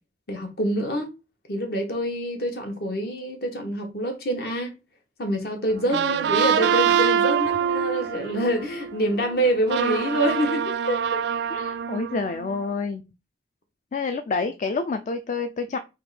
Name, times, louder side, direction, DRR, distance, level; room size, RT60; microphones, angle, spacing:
voice 1, 0.3-1.1 1.5-4.7 5.2-11.2, equal, 60° left, 1.1 m, -26 dB
sound 1, 5.7-12.6, right 8 dB, 70° right, 0.3 m, -25 dB
voice 2, 11.5-13.0 13.9-15.8, left 4 dB, 40° left, 0.4 m, -28 dB
3.5 x 2.9 x 4.7 m
head